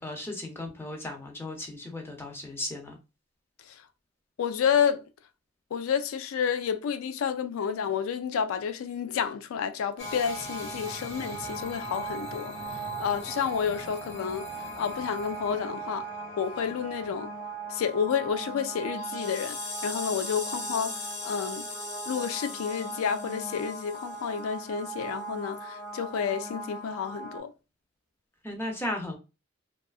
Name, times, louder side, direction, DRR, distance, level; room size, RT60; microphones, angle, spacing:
voice 1, 0.0-3.0 28.4-29.2, left 1 dB, 10° left, 0.4 m, -35 dB
voice 2, 4.4-5.0 5.7-12.5 13.0-14.5 14.8-16.1 16.4-17.3 17.7-21.7 22.1-27.5, left 7 dB, 80° left, 0.3 m, -30 dB
sound 1, 10.0-27.4, right 1 dB, 55° left, 0.7 m, -38 dB
2.6 x 2.3 x 2.3 m
head